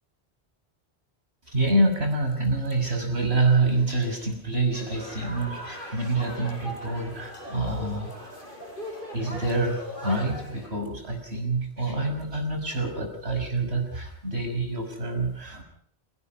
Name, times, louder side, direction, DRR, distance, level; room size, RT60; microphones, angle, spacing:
voice 1, 1.5-8.5 9.1-15.6, right 2 dB, 85° right, 4 dB, 6.3 m, -27 dB
sound 1, 4.7-10.7, equal, 55° left, 5.9 m, -39 dB
28.5 x 18.5 x 5.2 m, 0.63 s
omnidirectional pair, 1.1 m